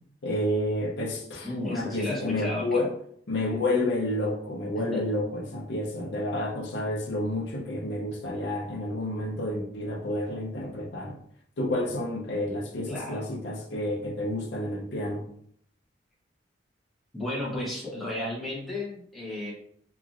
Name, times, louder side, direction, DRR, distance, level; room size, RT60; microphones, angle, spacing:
voice 1, 0.2-2.9 3.3-11.2 11.6-15.3, left 1 dB, 65° left, 0.6 m, -30 dB
voice 2, 1.4-2.9 4.8-5.0 12.9-13.3 17.1-19.5, left 1 dB, ahead, 0.9 m, -34 dB
2.8 x 2.5 x 2.5 m
head